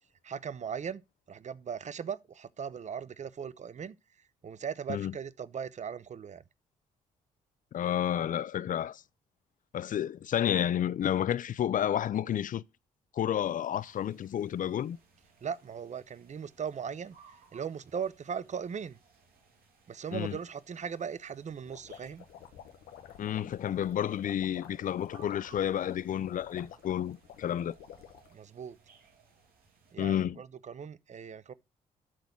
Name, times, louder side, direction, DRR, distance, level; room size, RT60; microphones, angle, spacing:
voice 1, 0.2-1.0 1.3-4.0 4.4-6.4 15.4-19.0 19.9-22.2 28.3-28.8 29.9-31.5, right 7 dB, 45° right, 0.8 m, -38 dB
voice 2, 7.7-9.0 9.7-12.6 13.1-15.0 20.1-20.4 23.2-27.8 30.0-30.4, left 10 dB, 55° left, 0.5 m, -30 dB
sound 1, 13.8-30.0, right 5 dB, 70° right, 2.8 m, -63 dB
sound 2, 21.5-28.3, left 9 dB, 85° left, 1.3 m, -50 dB
12.5 x 4.2 x 4.5 m
supercardioid pair, 55°, 16 cm